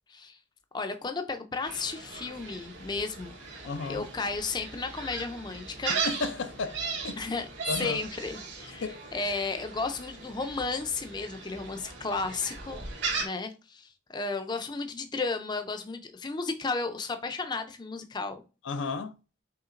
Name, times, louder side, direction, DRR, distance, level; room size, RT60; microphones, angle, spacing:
voice 1, 0.7-3.3 3.9-6.0 7.2-7.5 7.8-12.8 13.2-18.4, left 3 dB, 25° left, 0.5 m, -33 dB
Gull seagull, 1.6-13.2, right 4 dB, 70° right, 2.0 m, -38 dB
voice 2, 3.6-4.1 5.9-6.8 7.0-7.2 7.7-8.0 8.8-9.0 18.6-19.1, left 4 dB, 80° left, 0.5 m, -33 dB
5.7 x 3.2 x 2.5 m
head